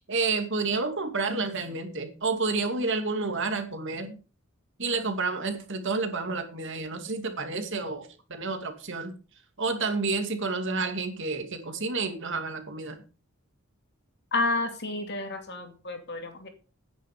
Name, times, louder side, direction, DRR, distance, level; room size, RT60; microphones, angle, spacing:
voice 1, 0.1-4.2 4.8-9.1 9.6-13.0, right 3 dB, 55° right, 6 dB, 2.4 m, -30 dB
voice 2, 14.3-16.5, left 2 dB, 50° left, 5 dB, 2.5 m, -30 dB
10.0 x 9.9 x 5.1 m, 0.35 s
head